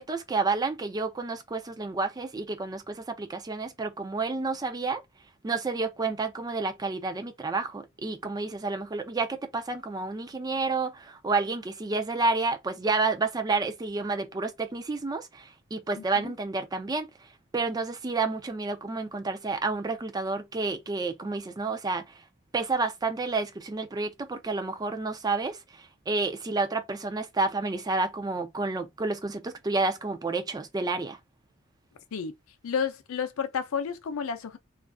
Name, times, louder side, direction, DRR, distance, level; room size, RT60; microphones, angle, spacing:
voice 1, 0.0-5.0 5.4-17.1 17.5-22.0 22.5-25.6 26.1-31.2, right 3 dB, 20° right, 0.3 m, -30 dB
voice 2, 16.0-16.3 32.1-32.3 32.6-34.6, left 6 dB, 75° left, 0.4 m, -31 dB
2.4 x 2.3 x 2.2 m
head